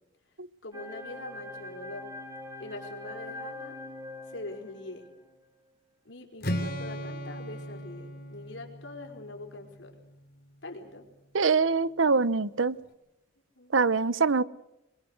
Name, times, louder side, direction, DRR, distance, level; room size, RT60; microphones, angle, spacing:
voice 1, 0.6-2.1 2.6-3.7 4.3-5.0 6.0-10.0 10.6-11.1 13.5-13.8, left 2 dB, 75° left, 3 dB, 5.0 m, -43 dB
sound 1, 0.7-5.2, left 2 dB, 15° right, 3.6 m, -43 dB
Strum, 6.4-10.5, equal, 55° left, 3.6 m, -37 dB
voice 2, 11.3-12.8 13.7-14.4, right 4 dB, 90° right, 18 dB, 0.8 m, -24 dB
26.0 x 22.0 x 6.7 m, 0.89 s
head